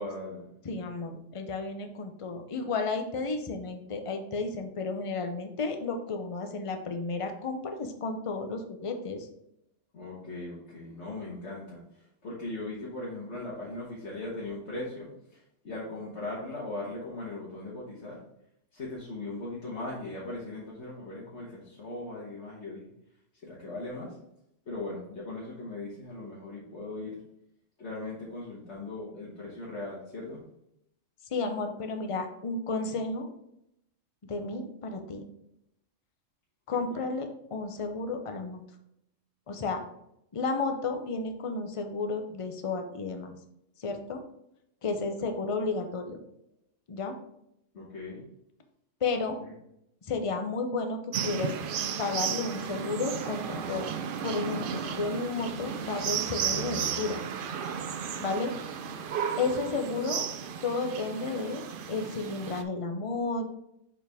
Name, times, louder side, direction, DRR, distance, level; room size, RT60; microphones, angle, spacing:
voice 1, 0.0-0.5 9.9-18.2 18.7-22.8 23.4-24.2 24.6-27.2 27.8-30.4 47.7-48.2 49.4-49.5 58.8-59.0, left 2 dB, 60° left, -6 dB, 1.6 m, -39 dB
voice 2, 0.6-9.3 31.3-33.3 34.3-35.2 36.7-38.6 39.5-39.8 40.3-43.3 43.8-44.2 44.8-46.2 46.9-47.2 49.0-49.4 50.0-51.5 52.0-53.9 54.2-57.2 58.2-58.5 59.4-60.2 60.6-63.5, left 3 dB, 35° left, 5 dB, 0.6 m, -32 dB
sound 1, 51.1-62.6, right 7 dB, 60° right, 0.6 m, -34 dB
6.6 x 4.2 x 3.4 m, 0.78 s
omnidirectional pair, 1.3 m